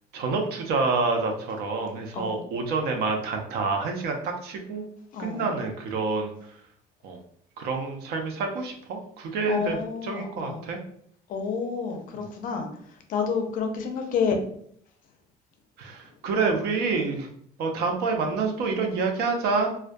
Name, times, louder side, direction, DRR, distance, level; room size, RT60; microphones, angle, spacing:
voice 1, 0.1-4.8 5.2-6.6 7.0-7.2 7.6-10.8 15.8-17.3 17.6-19.7, right 4 dB, 70° right, 3 dB, 0.5 m, -28 dB
voice 2, 9.5-10.6 11.3-14.4, left 5 dB, 55° left, 5 dB, 0.5 m, -29 dB
2.2 x 2.2 x 2.5 m, 0.66 s
cardioid pair, 130°, 17 cm